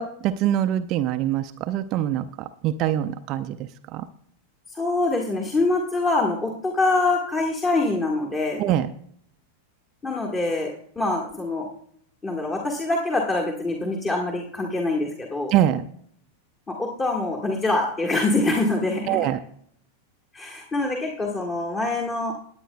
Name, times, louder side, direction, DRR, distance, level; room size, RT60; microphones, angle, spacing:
voice 1, 0.0-4.0 8.6-8.9 15.5-15.8 19.1-19.4, right 11 dB, 40° right, 10 dB, 0.5 m, -24 dB
voice 2, 4.7-8.6 10.0-11.7 12.2-15.5 16.7-19.2 20.3-22.3, left 2 dB, 20° left, 0 dB, 1.7 m, -25 dB
20.0 x 8.9 x 2.3 m, 0.65 s
figure-of-eight pair, 90°, 0 cm